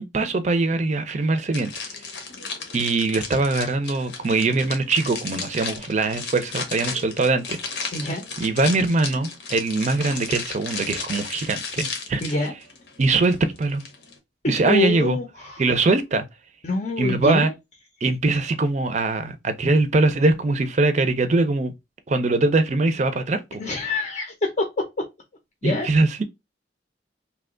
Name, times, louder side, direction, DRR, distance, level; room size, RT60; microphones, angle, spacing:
voice 1, 0.0-1.7 2.7-7.6 8.4-12.2 13.0-13.8 14.5-15.2 15.6-16.2 17.0-17.5 18.0-21.7 22.1-23.6 25.6-26.2, right 3 dB, 40° right, 0.5 m, -22 dB
sound 1, 1.5-14.2, left 4 dB, 85° left, 0.8 m, -34 dB
voice 2, 7.9-8.2 12.2-12.5 14.4-15.6 16.6-17.5 23.6-25.1 25.6-25.9, left 2 dB, 40° left, 0.6 m, -25 dB
2.9 x 2.2 x 3.6 m
head